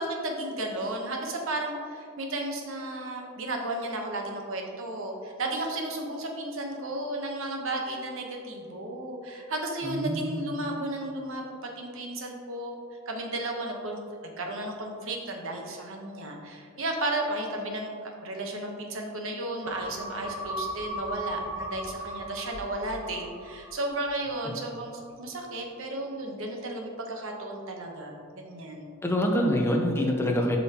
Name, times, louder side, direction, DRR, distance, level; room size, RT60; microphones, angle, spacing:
voice 1, 0.0-14.0 14.4-28.9, right 2 dB, 65° right, 2 dB, 1.0 m, -34 dB
voice 2, 9.8-10.5 29.0-30.6, equal, 10° left, 1 dB, 0.7 m, -26 dB
sound 1, 19.6-24.3 24.7-24.8, right 1 dB, 15° right, 0.9 m, -37 dB
7.9 x 5.5 x 2.9 m, 2.3 s
head